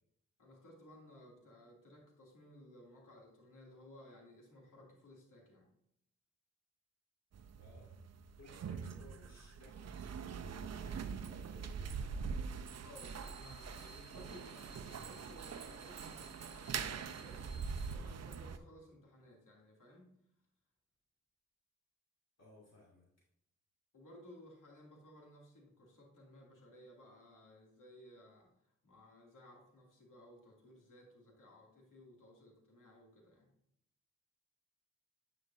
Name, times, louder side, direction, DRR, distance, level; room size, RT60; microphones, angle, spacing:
voice 1, 0.4-5.7 12.8-20.2 23.9-33.5, left 1 dB, 65° left, -1 dB, 2.6 m, -58 dB
sound 1, 7.3-18.6, right 6 dB, 50° right, 0.6 m, -44 dB
voice 2, 7.6-7.9 8.4-12.3 22.4-23.1, left 2 dB, 50° left, -4 dB, 2.4 m, -61 dB
sound 2, 12.9-17.9, right 1 dB, 15° right, 1.4 m, -59 dB
9.4 x 5.1 x 2.6 m, 0.76 s
supercardioid pair, 45°, 34 cm